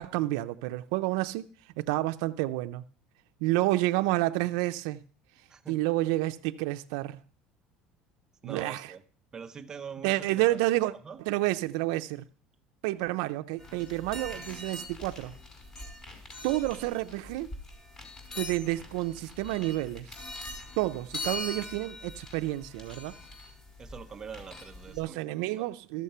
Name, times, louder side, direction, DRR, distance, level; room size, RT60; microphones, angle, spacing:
voice 1, 0.0-1.5 1.8-2.8 3.4-5.0 5.7-7.2 8.4-8.9 10.0-10.9 11.3-12.2 12.8-15.3 16.4-17.5 18.4-20.1 20.8-23.1 25.0-26.0, right 17 dB, 85° right, 0.5 m, -29 dB
voice 2, 8.4-9.0 9.3-10.6 11.0-11.2 23.8-25.6, right 6 dB, 25° right, 0.8 m, -44 dB
sound 1, 13.6-25.0, left 1 dB, 25° left, 5.5 m, -42 dB
14.0 x 6.6 x 5.5 m
cardioid pair, 140°, 3 cm